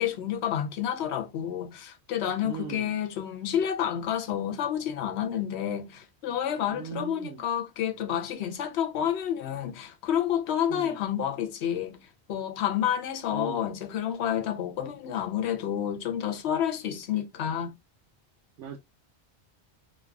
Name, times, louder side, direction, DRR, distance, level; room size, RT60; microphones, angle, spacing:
voice 1, 0.0-12.0 12.3-17.7, left 9 dB, 75° left, 0.8 m, -29 dB
voice 2, 2.4-3.0 6.7-7.4 10.7-11.0 13.3-13.7 18.6-18.8, right 7 dB, 90° right, 0.9 m, -39 dB
3.2 x 2.4 x 2.2 m
omnidirectional pair, 1.1 m